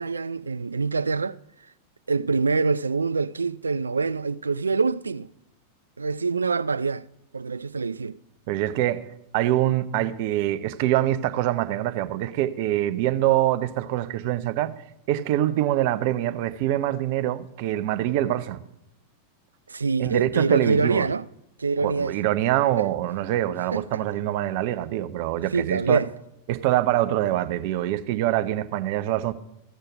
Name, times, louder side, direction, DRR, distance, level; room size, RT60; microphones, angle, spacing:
voice 1, 0.0-1.4 2.1-5.3 6.0-7.1 7.3-8.2 19.7-21.3 21.6-22.2 22.8-22.9 23.7-24.0 25.5-26.1, right 4 dB, 75° right, 0.4 m, -25 dB
voice 2, 8.5-9.1 9.3-14.7 15.1-18.6 20.0-21.1 21.8-26.0 26.5-29.3, right 13 dB, 50° right, 0.8 m, -24 dB
15.5 x 6.6 x 6.1 m
figure-of-eight pair, 90°, 0 cm